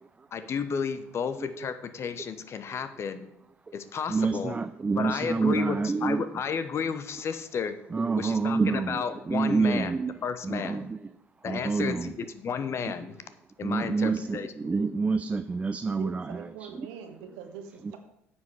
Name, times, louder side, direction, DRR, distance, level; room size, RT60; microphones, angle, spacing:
voice 1, 0.3-3.3 3.7-4.5 5.0-7.7 8.2-9.9 10.2-10.9 11.4-13.2 13.6-14.8, left 6 dB, 40° left, 11 dB, 0.9 m, -32 dB
voice 2, 4.1-6.2 7.9-10.1 10.4-11.0 11.4-12.1 13.6-16.7, right 4 dB, 20° right, 11 dB, 0.4 m, -27 dB
voice 3, 16.0-18.0, right 8 dB, 65° right, 7 dB, 1.3 m, -43 dB
9.7 x 7.4 x 4.8 m, 0.80 s
figure-of-eight pair, 55°, 7 cm